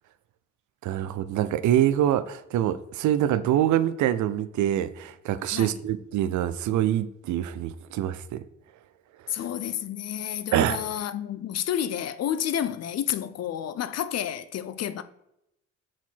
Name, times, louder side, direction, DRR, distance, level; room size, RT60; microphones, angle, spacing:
voice 1, 0.8-8.4 9.2-9.4 10.5-10.8, right 11 dB, 75° right, 0.5 m, -25 dB
voice 2, 9.3-15.0, left 10 dB, 55° left, 0.6 m, -30 dB
5.9 x 4.4 x 4.5 m
cardioid pair, 90°, 30 cm